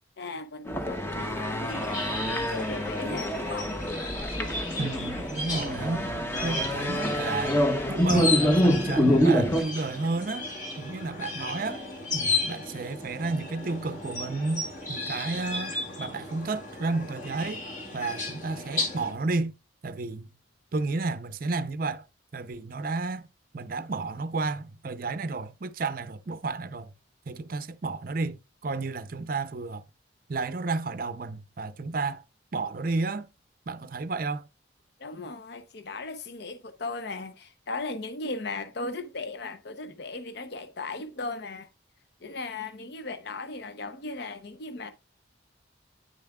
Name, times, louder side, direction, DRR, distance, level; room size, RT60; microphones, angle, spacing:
voice 1, 0.2-3.7 35.0-41.7 42.2-44.9, left 3 dB, 55° left, 0.6 m, -37 dB
sound 1, 0.7-9.6, equal, 10° left, 0.7 m, -26 dB
sound 2, 1.7-19.1, left 3 dB, 40° left, 2.1 m, -35 dB
voice 2, 4.8-6.0 6.4-7.6 7.9-10.5 10.8-11.8 12.1-17.6 17.9-19.5 19.8-20.3 20.7-22.0 22.3-23.3 23.5-26.9 27.3-29.8 30.3-32.2 32.5-33.3 33.7-34.5, right 3 dB, 45° right, 0.5 m, -32 dB
8.9 x 7.0 x 2.3 m
head